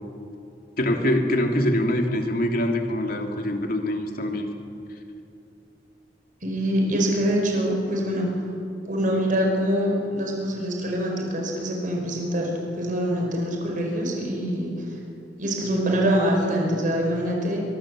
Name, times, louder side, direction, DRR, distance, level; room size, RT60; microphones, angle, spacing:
voice 1, 0.8-4.5, left 1 dB, 55° left, 3 dB, 2.8 m, -24 dB
voice 2, 6.4-8.3 8.9-12.5 12.8-14.7 15.4-17.6, equal, 50° right, 0 dB, 5.1 m, -24 dB
23.5 x 23.0 x 7.6 m, 2.7 s
head